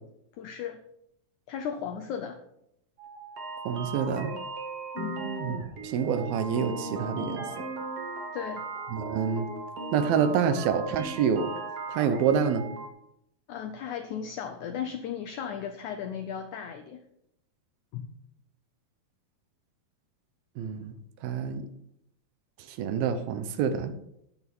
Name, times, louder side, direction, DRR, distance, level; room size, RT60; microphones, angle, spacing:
voice 1, 0.4-0.8 1.5-2.4 4.9-5.3 8.3-8.6 13.5-17.1 17.9-18.1, left 8 dB, 80° left, 6 dB, 1.8 m, -36 dB
sound 1, 3.0-12.9, right 3 dB, 50° right, 2.1 m, -37 dB
voice 2, 3.7-4.3 5.4-7.7 8.9-9.5 9.9-11.5 11.9-12.7 20.6-20.9 21.2-21.7 22.7-23.9, right 7 dB, 75° right, 10 dB, 2.7 m, -27 dB
10.5 x 9.1 x 5.4 m, 0.77 s
omnidirectional pair, 4.4 m